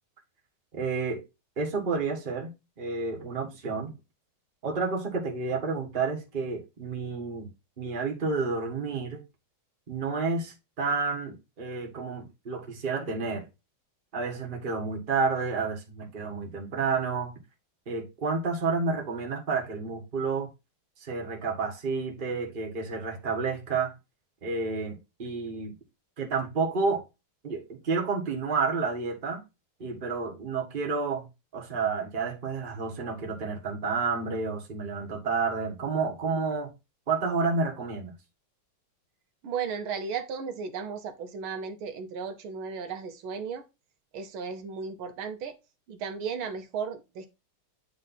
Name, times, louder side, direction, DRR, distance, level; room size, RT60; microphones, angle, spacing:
voice 1, 0.7-1.2 1.6-2.5 2.8-3.9 4.6-7.5 7.8-9.2 9.9-13.5 14.1-17.3 17.9-20.5 21.0-23.9 24.4-25.7 26.2-27.0 27.4-29.4 29.8-31.3 31.5-36.7 37.1-38.1, right 4 dB, 30° right, 1.4 m, -30 dB
voice 2, 39.4-43.6 44.1-45.6 45.9-47.3, right 6 dB, 80° right, 1.7 m, -35 dB
8.7 x 3.2 x 4.0 m
omnidirectional pair, 2.3 m